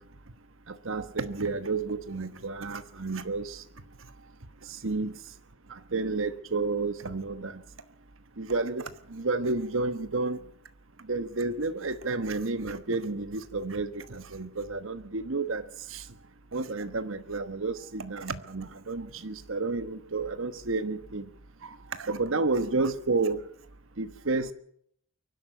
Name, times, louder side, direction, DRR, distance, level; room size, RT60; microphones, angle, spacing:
voice 1, 0.7-3.6 4.7-5.1 5.7-7.6 8.4-10.4 11.1-15.6 15.9-16.0 16.5-21.2 21.6-23.5 24.0-24.5, right 3 dB, 75° right, 11 dB, 1.2 m, -31 dB
23.0 x 12.0 x 9.3 m, 0.66 s
head